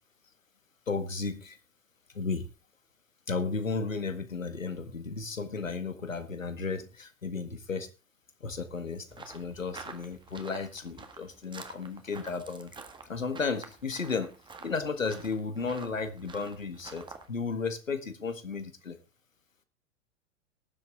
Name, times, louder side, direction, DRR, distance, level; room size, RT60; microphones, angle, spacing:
voice 1, 0.9-1.6 2.1-2.5 3.3-7.9 8.4-14.3 14.6-19.0, left 4 dB, 80° left, 10 dB, 1.9 m, -34 dB
sound 1, 9.1-17.3, right 4 dB, 10° right, 1.7 m, -48 dB
18.0 x 7.6 x 3.7 m, 0.29 s
figure-of-eight pair, 95°, 39 cm